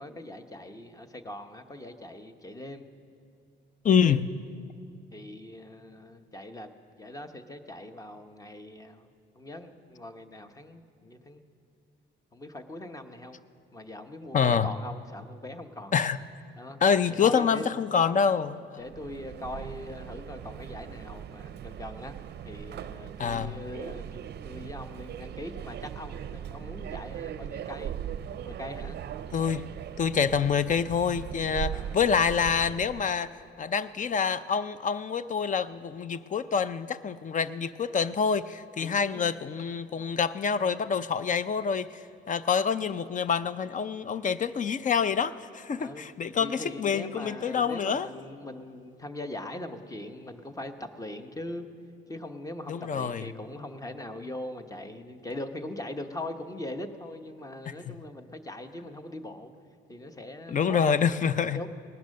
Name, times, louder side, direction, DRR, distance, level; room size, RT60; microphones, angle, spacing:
voice 1, 0.0-2.8 4.0-4.2 5.1-6.7 7.0-9.1 9.3-11.4 12.3-13.4 13.7-15.9 16.6-16.8 17.1-17.6 18.8-22.2 22.4-24.0 24.4-27.9 28.4-29.0 31.7-32.0 38.8-39.3 45.8-46.0 46.4-51.7 52.1-59.5 59.9-61.7, left 1 dB, 15° left, 8 dB, 1.0 m, -41 dB
voice 2, 3.8-4.3 14.3-14.7 15.9-16.2 16.8-18.8 23.2-23.6 29.3-29.7 30.0-33.3 33.6-41.9 42.3-48.1 52.7-53.3 57.7-58.0 60.5-61.6, left 6 dB, 40° left, 15 dB, 0.5 m, -26 dB
Subway metro underground, 18.8-33.2, right 9 dB, 55° right, 0.5 m, -39 dB
19.0 x 10.5 x 6.5 m, 2.3 s
cardioid pair, 90°, 20 cm